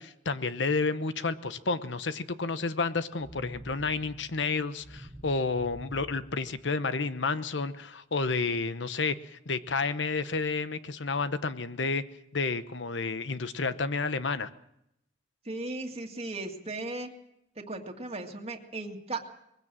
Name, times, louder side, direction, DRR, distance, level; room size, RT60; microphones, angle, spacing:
voice 1, 0.0-12.0 12.3-14.5, left 4 dB, 70° left, 13 dB, 1.0 m, -30 dB
sound 1, 3.2-7.2, right 1 dB, 5° right, 1.3 m, -48 dB
voice 2, 15.5-17.1 17.6-19.2, right 2 dB, 35° right, 2 dB, 2.0 m, -36 dB
21.5 x 16.0 x 7.5 m, 0.80 s
head